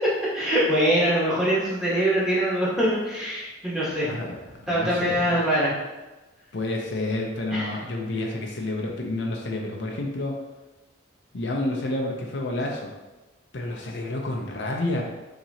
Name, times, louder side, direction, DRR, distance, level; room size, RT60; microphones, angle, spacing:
voice 1, 0.0-4.1 4.7-5.8 7.5-7.8, equal, 5° right, -8 dB, 1.3 m, -23 dB
voice 2, 4.0-4.4 4.7-5.4 6.5-10.3 11.3-12.9 13.5-15.0, left 2 dB, 65° left, 0 dB, 0.6 m, -29 dB
5.7 x 2.9 x 2.8 m, 1.1 s
head